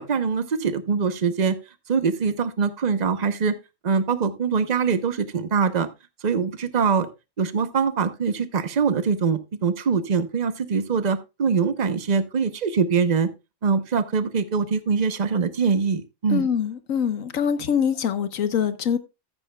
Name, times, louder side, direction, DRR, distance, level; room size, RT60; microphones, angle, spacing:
voice 1, 0.0-1.6 1.9-3.6 3.8-5.9 6.2-7.1 7.4-13.3 13.6-16.5, right 5 dB, 35° right, 0.9 m, -23 dB
voice 2, 16.3-19.0, left 8 dB, 90° left, 1.4 m, -24 dB
14.0 x 9.0 x 2.3 m
omnidirectional pair, 1.4 m